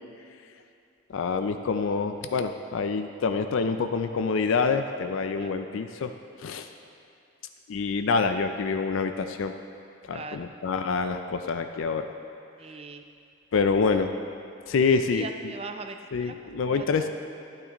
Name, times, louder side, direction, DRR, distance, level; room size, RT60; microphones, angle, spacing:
voice 1, 1.1-6.1 6.4-6.7 7.7-9.5 10.1-12.1 13.5-14.1 14.7-15.5 16.1-17.1, left 4 dB, 65° left, 7 dB, 0.4 m, -26 dB
voice 2, 12.6-13.0 15.1-16.3 16.6-17.1, right 4 dB, 30° right, 7 dB, 0.4 m, -40 dB
12.0 x 9.5 x 3.0 m, 2.5 s
head